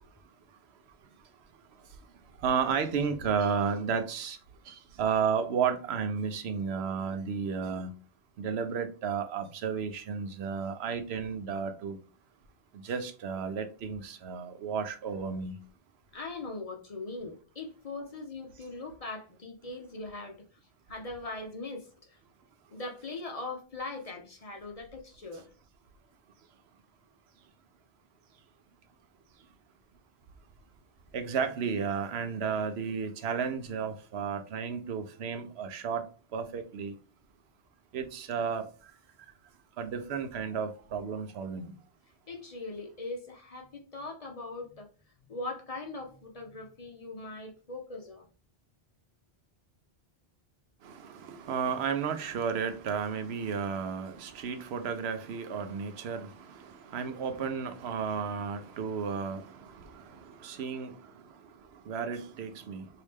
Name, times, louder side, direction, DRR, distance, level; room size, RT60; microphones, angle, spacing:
voice 1, 2.4-4.4 4.7-7.9 8.4-12.0 12.7-15.6 31.1-36.0 36.3-37.0 37.9-38.7 39.8-41.7 50.8-61.2 61.7-62.9, right 6 dB, 90° right, 0.9 m, -33 dB
voice 2, 16.1-20.4 20.9-22.2 22.7-25.5 31.3-31.4 42.3-44.9 45.3-48.3, left 2 dB, 45° left, 0.6 m, -40 dB
3.1 x 2.8 x 3.3 m
omnidirectional pair, 1.1 m